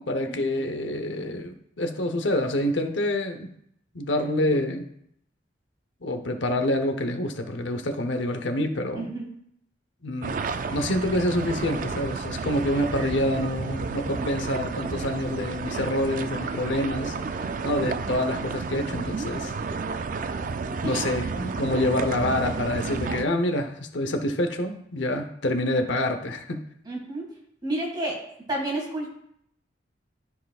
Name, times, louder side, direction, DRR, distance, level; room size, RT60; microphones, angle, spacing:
voice 1, 0.0-3.5 3.9-4.9 6.0-9.1 10.0-10.4 10.7-17.1 17.6-19.5 20.8-26.6, left 1 dB, 80° left, 6 dB, 0.8 m, -27 dB
voice 2, 9.0-9.3 20.8-21.0 26.9-27.2 27.6-28.2 28.5-29.1, right 1 dB, 25° right, -1 dB, 2.1 m, -30 dB
sound 1, 10.2-23.3, right 4 dB, 45° right, 0.4 m, -31 dB
13.5 x 4.7 x 2.4 m, 0.72 s
head